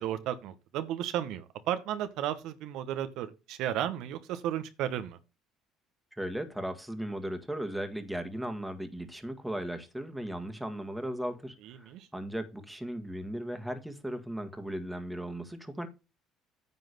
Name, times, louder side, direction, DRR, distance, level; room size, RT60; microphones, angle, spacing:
voice 1, 0.0-5.2 11.9-12.1, right 11 dB, 70° right, 1.0 m, -34 dB
voice 2, 6.2-15.9, right 1 dB, 5° right, 1.7 m, -37 dB
9.6 x 3.9 x 6.6 m
supercardioid pair, 80°, 0 cm